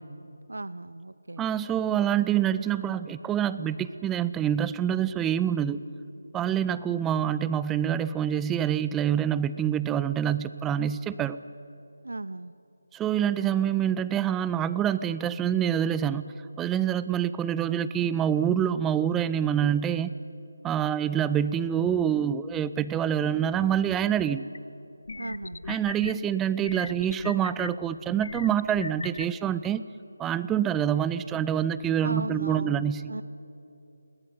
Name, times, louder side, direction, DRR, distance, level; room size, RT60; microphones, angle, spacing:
voice 1, 0.5-1.5 12.0-12.5 25.2-25.6 32.0-33.2, right 2 dB, 85° right, 17 dB, 0.6 m, -36 dB
voice 2, 1.4-5.8 6.3-11.4 12.9-20.1 20.6-24.4 25.7-29.8 30.2-33.0, right 9 dB, 10° right, 15 dB, 0.4 m, -26 dB
sound 1, 24.5-24.6 25.1-26.1 26.6-27.7 28.2-29.3, left 3 dB, 60° left, 0.6 m, -36 dB
20.0 x 18.0 x 9.4 m, 2.8 s
figure-of-eight pair, 165°, 0 cm